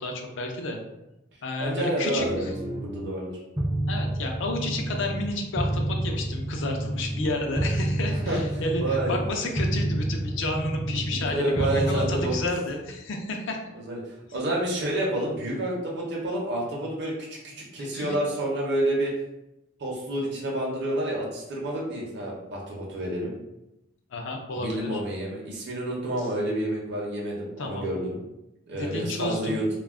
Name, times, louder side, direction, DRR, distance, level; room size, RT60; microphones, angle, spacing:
voice 1, 0.0-0.8 1.4-2.5 3.9-13.6 17.8-18.1 24.1-25.0 26.2-26.3 27.6-28.0 28.7-29.7, left 2 dB, 65° left, 3 dB, 0.4 m, -31 dB
voice 2, 1.6-3.4 8.1-8.4 8.8-9.1 11.1-12.4 13.7-14.0 14.3-17.1 17.4-19.1 19.8-23.3 24.6-28.2 28.7-29.6, right 1 dB, 60° right, -3 dB, 0.6 m, -29 dB
sound 1, 2.2-3.0 3.6-5.3 5.6-9.3 9.6-11.3 11.6-12.5, right 1 dB, 15° right, 0.4 m, -29 dB
2.3 x 2.0 x 3.4 m, 0.91 s
head